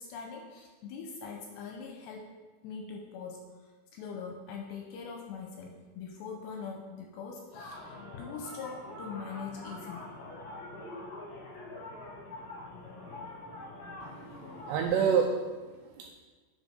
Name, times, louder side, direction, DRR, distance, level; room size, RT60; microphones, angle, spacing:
voice 1, 0.0-2.3 2.6-3.4 3.9-10.1, left 5 dB, 80° left, 1 dB, 2.6 m, -42 dB
sound 1, 7.5-14.9, left 2 dB, 65° left, 1.7 m, -44 dB
voice 2, 14.0-16.1, right 6 dB, 90° right, 2 dB, 2.5 m, -29 dB
9.2 x 4.9 x 5.1 m, 1.3 s
omnidirectional pair, 5.5 m